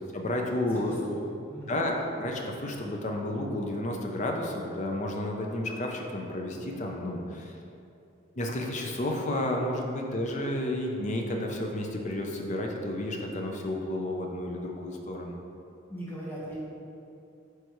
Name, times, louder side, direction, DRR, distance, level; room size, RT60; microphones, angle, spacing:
voice 1, 0.1-1.0 1.7-7.5 8.4-15.4, left 1 dB, 35° left, 1 dB, 0.6 m, -31 dB
voice 2, 0.7-1.8 15.9-16.6, right 1 dB, 10° left, -8 dB, 1.3 m, -40 dB
9.2 x 3.3 x 3.1 m, 2.6 s
head